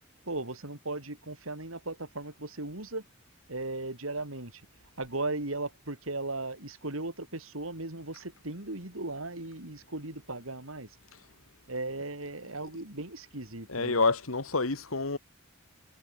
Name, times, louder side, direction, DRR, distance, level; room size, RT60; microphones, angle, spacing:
voice 1, 0.3-3.1 3.5-4.6 5.0-11.0 11.7-14.0, right 2 dB, 80° right, 4.6 m, -37 dB
voice 2, 13.7-15.2, left 3 dB, 80° left, 1.9 m, -28 dB
head